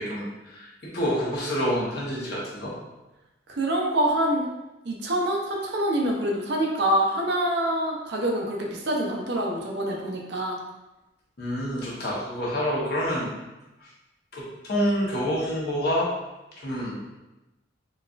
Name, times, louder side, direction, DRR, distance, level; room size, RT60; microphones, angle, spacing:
voice 1, 0.0-2.7 11.4-13.3 13.8-13.9 14.3-16.1 16.6-17.0, equal, 55° left, -6 dB, 1.0 m, -27 dB
voice 2, 3.5-4.5 4.9-10.6, right 1 dB, 60° right, 0 dB, 0.6 m, -25 dB
4.0 x 2.4 x 2.4 m, 1.0 s
head